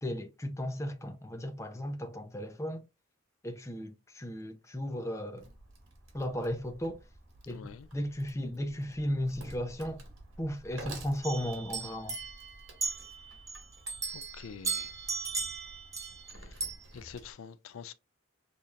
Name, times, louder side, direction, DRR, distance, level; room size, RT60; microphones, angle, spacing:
voice 1, 0.0-2.8 3.4-5.5 6.1-7.0 7.5-10.0 10.4-12.2, equal, 15° left, 0.6 m, -35 dB
Wood, 5.4-17.3, right 2 dB, 85° right, 1.9 m, -51 dB
voice 2, 7.5-7.9 14.1-14.9 15.2-15.4 16.3-16.7 16.9-17.9, left 6 dB, 90° left, 0.4 m, -47 dB
sound 1, 11.2-13.6 13.9-16.3 16.6-16.7, right 4 dB, 15° right, 1.2 m, -36 dB
6.5 x 2.8 x 2.4 m
head